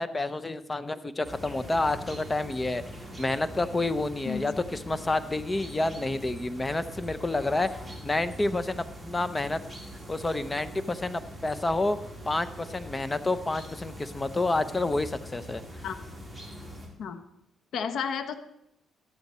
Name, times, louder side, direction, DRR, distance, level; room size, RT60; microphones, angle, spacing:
voice 1, 0.0-2.8 3.2-7.7 8.0-9.6 10.1-12.0 12.3-15.6, left 2 dB, 20° left, 12 dB, 0.8 m, -29 dB
sound 1, 1.2-16.9, equal, ahead, 4.1 m, -43 dB
voice 2, 17.7-18.3, left 7 dB, 70° left, 8 dB, 1.0 m, -31 dB
13.0 x 12.0 x 4.3 m, 0.79 s
cardioid pair, 90°, 0 cm